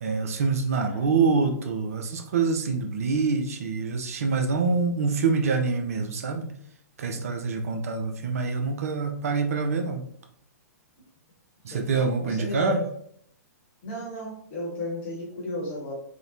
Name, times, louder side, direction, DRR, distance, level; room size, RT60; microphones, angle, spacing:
voice 1, 0.0-6.5 7.0-10.0 11.6-12.8, right 4 dB, 55° right, 4 dB, 0.4 m, -26 dB
voice 2, 0.7-1.1 7.1-7.5 11.7-12.8 13.8-15.9, left 1 dB, 40° left, -2 dB, 0.9 m, -35 dB
2.8 x 2.1 x 2.5 m, 0.67 s
figure-of-eight pair, 110°, 9 cm